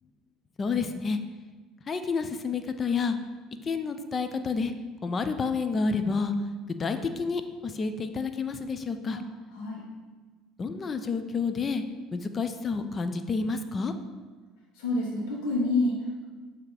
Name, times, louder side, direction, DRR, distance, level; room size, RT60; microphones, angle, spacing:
voice 1, 0.6-1.2 1.9-3.2 3.6-4.7 5.0-6.3 6.8-9.2 10.6-11.8 12.1-13.9, left 4 dB, 30° left, 9 dB, 0.4 m, -29 dB
voice 2, 9.5-9.8 14.7-16.2, left 2 dB, 80° left, -3 dB, 1.2 m, -28 dB
7.2 x 2.9 x 4.8 m, 1.4 s
cardioid pair, 120°, 0 cm